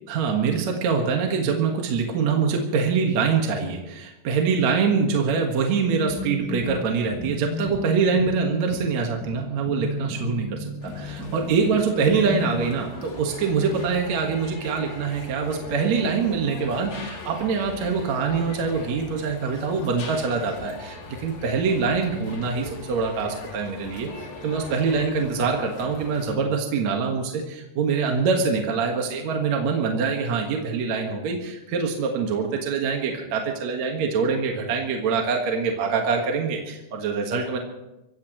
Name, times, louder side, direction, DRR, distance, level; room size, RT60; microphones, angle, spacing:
voice 1, 0.1-24.1 24.4-37.6, right 5 dB, 55° right, 1 dB, 2.1 m, -24 dB
sound 1, 5.8-12.6, left 2 dB, 20° left, 6.5 m, -34 dB
sound 2, 10.8-26.3, left 3 dB, 45° left, 3.2 m, -40 dB
24.5 x 15.5 x 3.1 m, 0.96 s
omnidirectional pair, 5.0 m